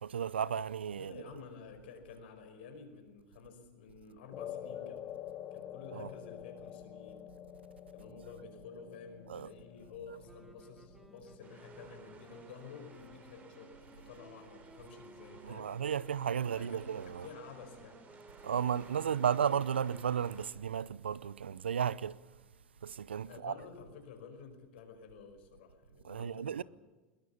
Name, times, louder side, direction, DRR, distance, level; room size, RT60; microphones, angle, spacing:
voice 1, 0.0-1.2 5.9-6.1 9.3-9.5 15.4-17.3 18.4-22.2 22.8-23.6 26.0-26.6, right 8 dB, 90° right, 0.7 m, -34 dB
voice 2, 0.9-5.0 5.5-7.3 7.9-15.8 16.5-18.0 23.3-26.6, left 5 dB, 70° left, 5.0 m, -51 dB
sound 1, 4.3-12.8, left 10 dB, 35° left, 1.4 m, -48 dB
sound 2, 10.2-20.7, right 1 dB, 5° right, 3.0 m, -59 dB
sound 3, 11.4-20.5, right 4 dB, 30° right, 4.4 m, -57 dB
22.0 x 19.0 x 7.1 m
hypercardioid pair, 95°, 6 cm